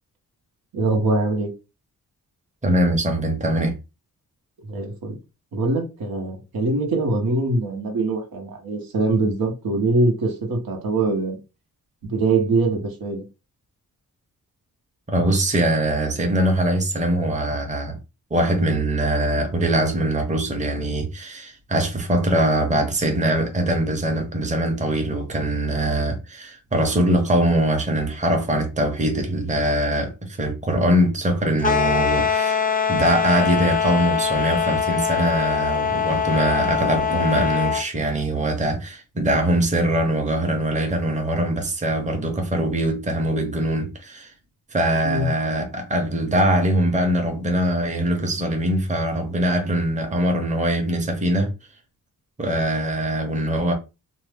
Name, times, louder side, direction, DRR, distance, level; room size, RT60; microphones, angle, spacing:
voice 1, 0.7-1.5 4.6-5.2 5.5-11.4 12.0-13.2 45.0-45.3, right 2 dB, 85° right, 0.9 m, -23 dB
voice 2, 2.6-3.8 15.1-18.0 18.3-32.6 32.9-44.3 44.7-51.5 52.4-53.7, right 1 dB, 20° right, 0.7 m, -22 dB
sound 1, 31.6-37.8, left 7 dB, 25° left, 0.4 m, -22 dB
2.7 x 2.0 x 3.3 m
wide cardioid pair, 95°, 35 cm